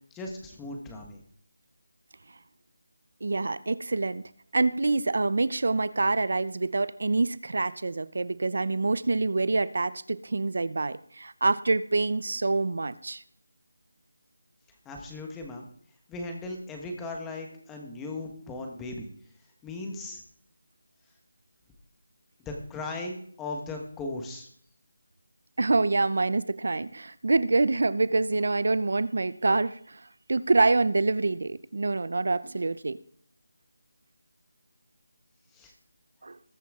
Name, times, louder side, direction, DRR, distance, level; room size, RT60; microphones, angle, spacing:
voice 1, 0.1-1.2 14.8-15.6 16.1-19.1 19.6-20.2 22.4-24.5 35.5-35.7, left 2 dB, 5° left, 2 dB, 1.3 m, -37 dB
voice 2, 3.2-13.2 25.6-33.0 36.2-36.4, right 3 dB, 60° right, 17 dB, 0.6 m, -26 dB
20.0 x 8.4 x 3.7 m, 0.62 s
figure-of-eight pair, 175°, 0 cm